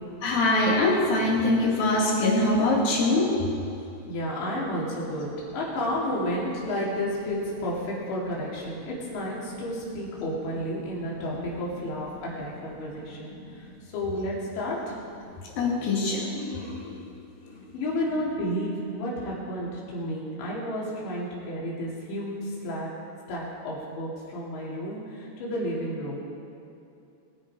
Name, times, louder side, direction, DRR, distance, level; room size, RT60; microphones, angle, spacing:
voice 1, 0.2-3.5 13.3-13.4 15.5-17.1 17.4-17.6, left 2 dB, 60° left, -3 dB, 3.8 m, -24 dB
voice 2, 4.1-13.7 13.9-14.9 17.7-22.9 23.3-26.2, equal, 80° left, -5 dB, 5.1 m, -31 dB
21.5 x 9.2 x 4.9 m, 2.7 s
omnidirectional pair, 5.0 m